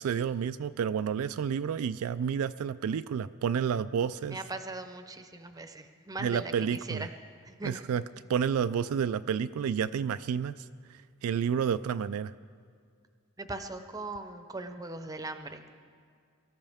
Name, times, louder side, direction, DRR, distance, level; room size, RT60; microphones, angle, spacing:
voice 1, 0.0-4.4 6.2-7.1 7.6-8.0 8.3-12.3, right 7 dB, 70° right, 12 dB, 0.3 m, -30 dB
voice 2, 4.3-7.1 7.4-7.9 13.4-15.6, right 2 dB, 15° right, 8 dB, 0.7 m, -40 dB
23.0 x 13.5 x 3.5 m, 2.2 s
head